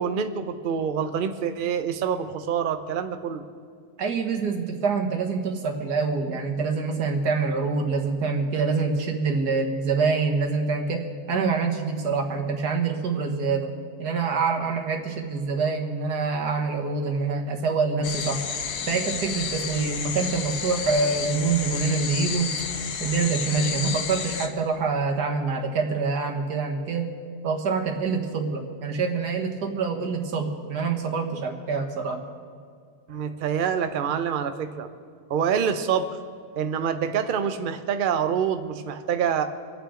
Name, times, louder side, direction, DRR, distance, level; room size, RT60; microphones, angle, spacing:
voice 1, 0.0-3.4 33.1-34.9 35.3-36.2 36.5-39.4, right 7 dB, 50° right, 9 dB, 0.6 m, -26 dB
voice 2, 4.0-13.7 14.0-18.4 18.9-22.6 23.0-27.2 27.4-32.2, right 4 dB, 90° right, 2 dB, 2.0 m, -26 dB
sound 1, 18.0-24.5, left 6 dB, 80° left, 1.4 m, -31 dB
25.5 x 8.8 x 3.8 m, 2.1 s
omnidirectional pair, 1.7 m